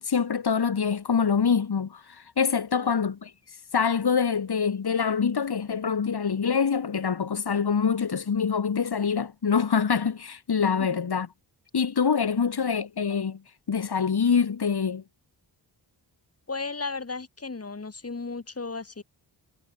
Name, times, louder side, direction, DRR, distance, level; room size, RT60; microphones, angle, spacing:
voice 1, 0.0-3.3 3.7-11.3 11.7-13.4 13.7-15.0, left 6 dB, 60° left, 5.4 m, -25 dB
voice 2, 2.7-3.1 10.8-10.9 12.3-12.8 16.5-19.0, left 4 dB, 35° left, 5.6 m, -35 dB
wide cardioid pair, 110°, 43 cm